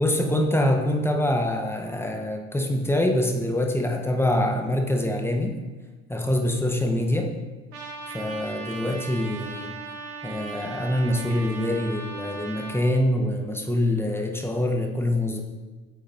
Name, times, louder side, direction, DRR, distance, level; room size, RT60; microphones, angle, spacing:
voice 1, 0.0-5.6 6.1-7.3 8.1-9.7 10.2-15.4, left 1 dB, 10° left, 2 dB, 1.2 m, -25 dB
Trumpet, 7.7-12.8, right 4 dB, 75° right, 1.9 m, -38 dB
9.2 x 3.6 x 4.3 m, 1.3 s
hypercardioid pair, 65°, 30 cm